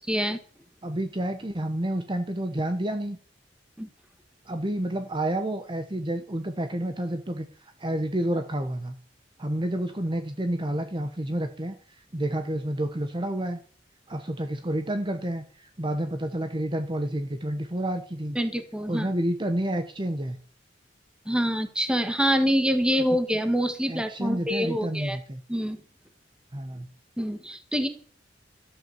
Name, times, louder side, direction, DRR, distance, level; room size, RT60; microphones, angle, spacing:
voice 1, 0.1-0.4 3.8-3.9 18.3-19.1 21.2-25.2 25.5-25.8 27.2-27.9, equal, 5° right, 8 dB, 1.6 m, -26 dB
voice 2, 0.8-3.2 4.5-7.5 7.8-9.0 9.4-13.6 14.1-18.4 18.9-20.4 23.1-23.2 23.9-25.4 26.5-26.9, right 1 dB, 25° right, 7 dB, 1.1 m, -29 dB
12.5 x 7.9 x 7.9 m, 0.44 s
head